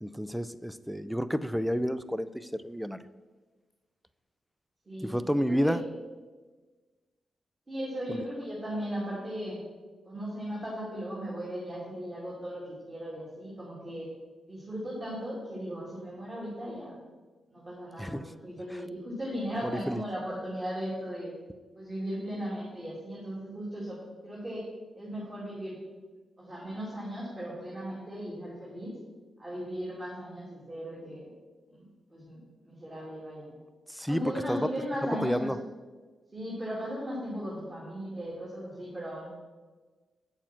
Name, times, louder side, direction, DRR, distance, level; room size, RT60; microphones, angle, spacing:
voice 1, 0.0-3.1 5.0-5.8 8.1-8.2 18.0-18.3 19.6-20.0 33.9-34.2 34.5-34.7 35.2-35.6, equal, ahead, 14 dB, 0.4 m, -30 dB
voice 2, 4.9-5.8 7.7-9.6 10.0-14.1 14.5-17.0 17.5-21.3 21.7-24.6 24.9-25.8 26.4-29.0 29.4-31.3 31.7-31.8 32.1-33.6 34.1-35.5 36.3-39.3, equal, 25° right, -6 dB, 2.8 m, -37 dB
8.6 x 7.0 x 6.0 m, 1.3 s
cardioid pair, 105°, 0 cm